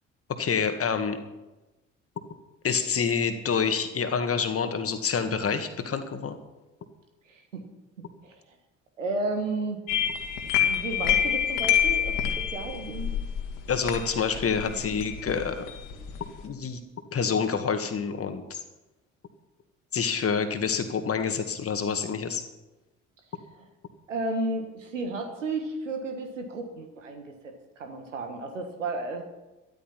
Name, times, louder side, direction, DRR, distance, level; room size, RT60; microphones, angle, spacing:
voice 1, 0.4-1.2 2.6-6.4 13.7-15.7 16.4-16.8 17.1-18.6 19.9-22.4, left 6 dB, 40° left, 8 dB, 1.9 m, -27 dB
voice 2, 7.3-7.6 8.0-8.3 9.0-9.8 10.6-13.1 24.1-29.2, right 2 dB, 85° right, 5 dB, 1.5 m, -33 dB
sound 1, 9.9-16.5, left 9 dB, 60° left, 2.1 m, -27 dB
13.0 x 12.5 x 5.9 m, 1.1 s
figure-of-eight pair, 50°, 37 cm